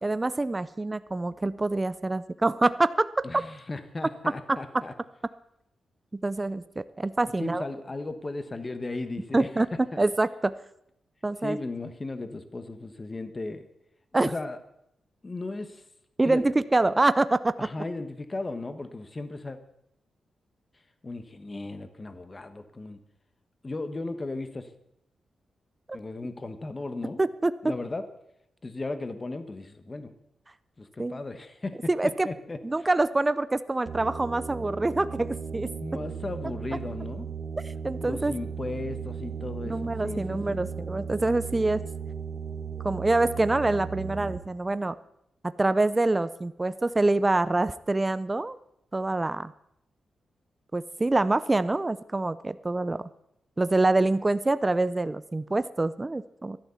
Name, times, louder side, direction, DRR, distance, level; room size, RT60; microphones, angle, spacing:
voice 1, 0.0-3.2 6.1-7.6 9.3-9.7 10.0-10.5 11.2-11.6 14.1-14.3 16.2-17.5 25.9-26.0 27.2-27.5 31.0-31.2 31.9-32.3 32.6-35.7 37.8-38.3 39.7-41.8 42.8-45.0 45.6-48.6 48.9-49.5 50.7-53.1 53.6-56.6, right 2 dB, 15° right, 14 dB, 0.4 m, -25 dB
voice 2, 3.2-4.9 7.4-10.0 11.4-13.7 14.2-14.6 15.2-15.8 16.2-16.4 17.6-19.6 21.0-23.0 23.6-24.7 25.9-27.2 27.6-28.1 28.6-30.1 30.8-32.9 35.8-37.3 38.0-40.6, left 2 dB, 25° left, 10 dB, 1.1 m, -36 dB
sound 1, 33.9-44.4, right 6 dB, 50° right, 1.4 m, -36 dB
12.0 x 11.5 x 6.9 m, 0.79 s
wide cardioid pair, 160°, 0 cm